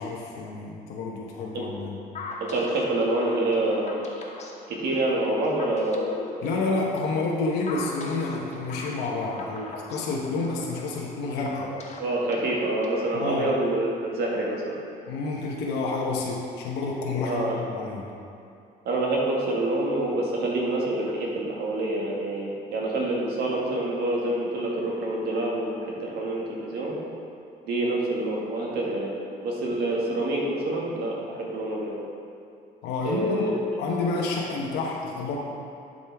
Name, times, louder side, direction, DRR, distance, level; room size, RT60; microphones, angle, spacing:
voice 1, 0.0-2.0 6.4-11.7 13.1-13.5 15.1-18.1 32.8-33.4 33.8-35.4, left 3 dB, 85° left, -2 dB, 1.0 m, -29 dB
sound 1, 2.1-13.2, left 4 dB, 40° left, 1.1 m, -39 dB
voice 2, 2.4-4.1 4.7-6.1 12.0-14.8 17.2-17.6 18.9-26.9 27.6-29.1 29.4-32.0 33.0-33.5, right 2 dB, 70° right, -3 dB, 1.7 m, -27 dB
11.5 x 5.3 x 3.5 m, 2.5 s
cardioid pair, 110°, 17 cm